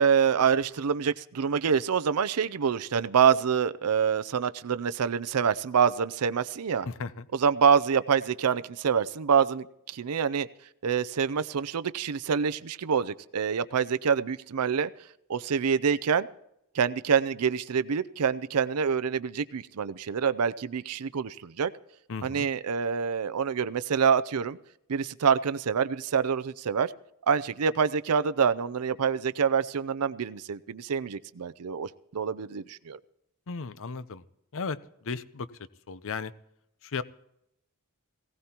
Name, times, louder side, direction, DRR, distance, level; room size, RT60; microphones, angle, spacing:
voice 1, 0.0-6.9 7.3-10.5 10.8-14.9 15.3-16.3 16.7-21.7 22.2-24.6 24.9-26.9 27.3-33.0, right 6 dB, 80° right, 15 dB, 0.5 m, -26 dB
voice 2, 6.9-7.3 22.1-22.5 33.5-34.2 34.5-35.5 35.9-36.3 36.8-37.0, left 4 dB, 65° left, 15 dB, 0.7 m, -35 dB
19.5 x 17.0 x 2.9 m, 0.78 s
head